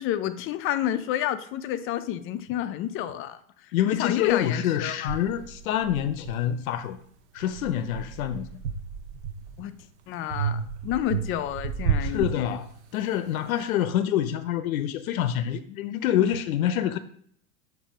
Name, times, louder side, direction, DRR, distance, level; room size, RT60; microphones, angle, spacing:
voice 1, 0.0-5.2 9.6-9.8 10.1-12.6, left 11 dB, 30° left, 0.5 m, -30 dB
voice 2, 3.7-7.0 7.3-8.5 12.0-12.7 12.9-17.0, left 10 dB, 75° left, 0.7 m, -26 dB
sound 1, 4.3-4.4 5.1-6.9 7.4-9.7 10.3-13.1, right 7 dB, 50° right, 0.8 m, -32 dB
7.7 x 2.7 x 4.9 m
hypercardioid pair, 115°, 42 cm